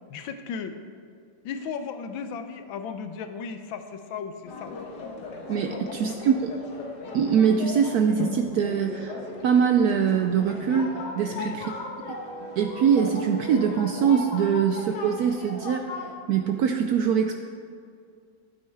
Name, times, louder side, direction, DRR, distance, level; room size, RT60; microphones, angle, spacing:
voice 1, 0.1-0.8 1.4-4.7 5.7-6.2 11.3-11.6, left 6 dB, 90° left, 8 dB, 1.5 m, -35 dB
sound 1, 4.4-16.1, left 2 dB, 60° left, 1.7 m, -37 dB
voice 2, 5.5-6.5 7.1-9.2 9.4-11.6 12.1-12.2 12.6-15.9 16.3-17.3, right 7 dB, 75° right, 5 dB, 0.8 m, -23 dB
12.5 x 9.0 x 3.4 m, 2.2 s
omnidirectional pair, 2.1 m